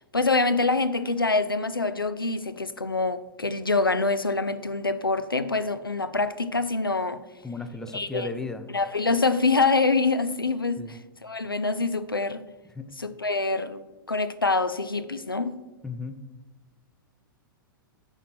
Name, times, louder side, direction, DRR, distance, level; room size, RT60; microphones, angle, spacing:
voice 1, 0.1-7.2 7.9-8.3 8.7-12.4 13.0-13.8 14.1-15.5, left 3 dB, 85° left, 0.4 m, -25 dB
voice 2, 7.4-8.6 10.8-11.0 12.8-12.9 15.8-16.2, left 3 dB, 5° left, 0.6 m, -34 dB
8.9 x 4.4 x 6.0 m
figure-of-eight pair, 100°, 12 cm